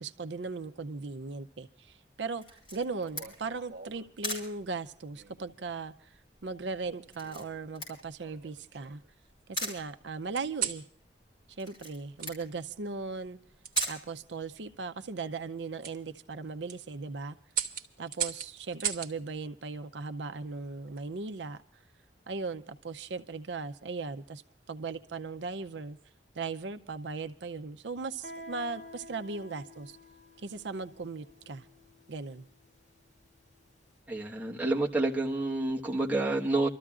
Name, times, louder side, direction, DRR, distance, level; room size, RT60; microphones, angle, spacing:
voice 1, 0.0-9.0 9.5-10.8 11.6-13.4 13.9-17.4 18.0-21.6 22.3-24.4 24.7-26.0 26.3-30.0 30.4-31.7 32.1-32.5, right 4 dB, 80° right, 9 dB, 0.6 m, -38 dB
Camera, 2.4-14.9, left 1 dB, 25° left, 5.4 m, -43 dB
sound 1, 3.0-4.1 5.1-5.6 6.8-7.6 8.2-9.1 10.4-10.9 12.2-12.3 13.6-14.0 15.8-16.0 16.5-16.8 17.5-19.1 20.6-21.0, right 9 dB, 50° right, 1.2 m, -37 dB
Guitar, 28.2-33.7, left 1 dB, 45° left, 5.1 m, -50 dB
voice 2, 34.1-36.7, right 2 dB, 10° right, -3 dB, 1.4 m, -29 dB
29.0 x 13.5 x 2.4 m, 0.63 s
head